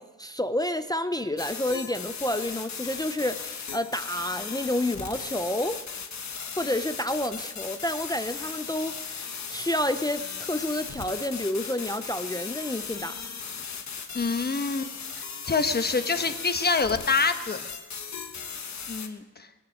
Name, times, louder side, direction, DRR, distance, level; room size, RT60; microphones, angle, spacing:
voice 1, 0.0-5.8 6.6-13.2, left 1 dB, 10° left, 9 dB, 0.4 m, -29 dB
sound 1, 1.4-19.1, left 6 dB, 55° left, 1.4 m, -37 dB
voice 2, 14.1-17.7 18.9-19.5, left 4 dB, 30° left, 9 dB, 1.0 m, -26 dB
21.5 x 10.0 x 6.2 m, 1.2 s
wide cardioid pair, 155°, 33 cm